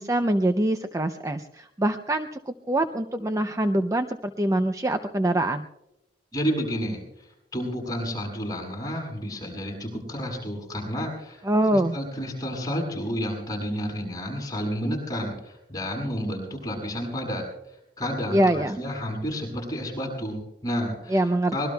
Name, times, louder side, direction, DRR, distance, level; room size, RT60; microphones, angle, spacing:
voice 1, 0.0-5.7 11.4-12.0 18.3-18.8 21.1-21.6, right 1 dB, 20° right, 7 dB, 0.5 m, -24 dB
voice 2, 6.3-11.4 11.7-17.5 18.0-21.7, equal, 20° left, -2 dB, 7.7 m, -31 dB
24.5 x 22.0 x 2.3 m, 0.88 s
head